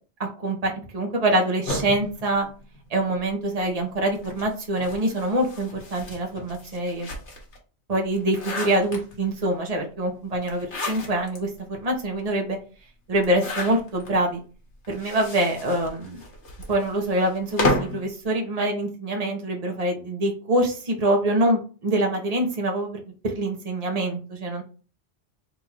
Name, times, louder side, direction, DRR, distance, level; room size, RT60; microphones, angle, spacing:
voice 1, 0.4-2.5 2.9-7.1 7.9-12.6 13.1-14.4 14.9-16.2 16.7-24.6, right 1 dB, 35° right, 1 dB, 1.1 m, -25 dB
sound 1, 1.7-3.3 4.1-7.6 8.0-9.4 10.4-11.4 11.9-12.0 12.2-12.3 13.2-14.1 14.8-18.1, left 2 dB, 80° left, 1.5 m, -32 dB
4.0 x 2.6 x 4.4 m, 0.36 s
omnidirectional pair, 1.2 m